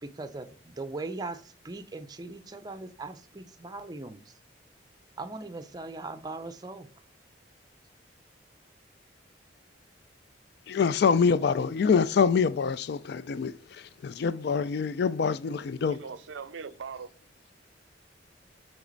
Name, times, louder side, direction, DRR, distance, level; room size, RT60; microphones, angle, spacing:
voice 1, 0.0-4.3 5.2-6.9, right 3 dB, 20° right, 0.5 m, -39 dB
voice 2, 10.7-16.0, left 5 dB, 60° left, 0.4 m, -25 dB
voice 3, 15.9-17.1, right 5 dB, 85° right, 0.5 m, -40 dB
8.2 x 3.5 x 3.9 m
head